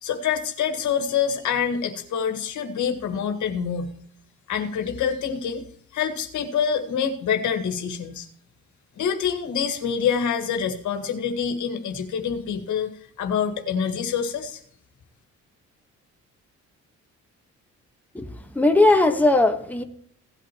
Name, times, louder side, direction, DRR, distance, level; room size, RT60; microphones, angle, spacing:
voice 1, 0.0-4.0 4.5-5.6 5.9-8.3 9.0-12.9 13.2-14.6, left 7 dB, 75° left, 1.7 m, -26 dB
voice 2, 18.5-19.8, left 2 dB, 5° left, 1.3 m, -18 dB
17.0 x 8.5 x 3.0 m
cardioid pair, 90°, 30 cm